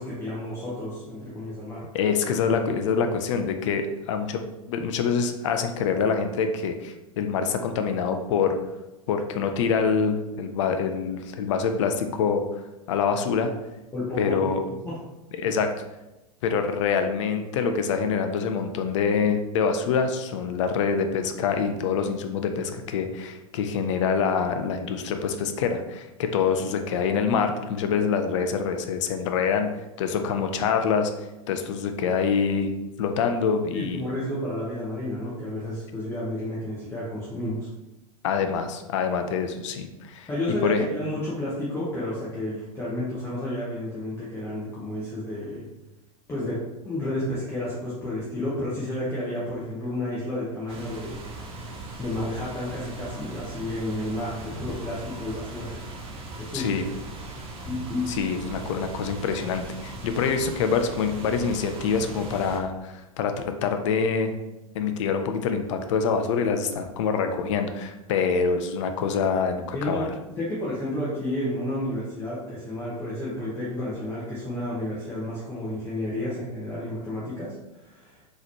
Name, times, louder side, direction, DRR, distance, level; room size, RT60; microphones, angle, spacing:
voice 1, 0.0-1.9 13.9-14.5 14.8-15.0 33.7-37.7 40.3-45.7 46.3-55.7 56.4-56.8 57.6-58.2 69.7-78.2, left 1 dB, 15° left, -8 dB, 0.8 m, -31 dB
voice 2, 1.9-4.4 4.7-8.6 9.1-12.4 12.9-13.5 14.2-14.6 15.3-15.7 16.4-29.7 30.0-31.1 31.5-32.7 33.0-34.0 38.2-40.3 40.6-40.8 56.5-56.8 58.1-64.3 64.7-70.1, left 6 dB, 55° left, 6 dB, 0.5 m, -25 dB
sound 1, 50.7-62.6, right 2 dB, 30° right, 0.7 m, -38 dB
3.9 x 3.0 x 2.8 m, 1.0 s
figure-of-eight pair, 90°, 19 cm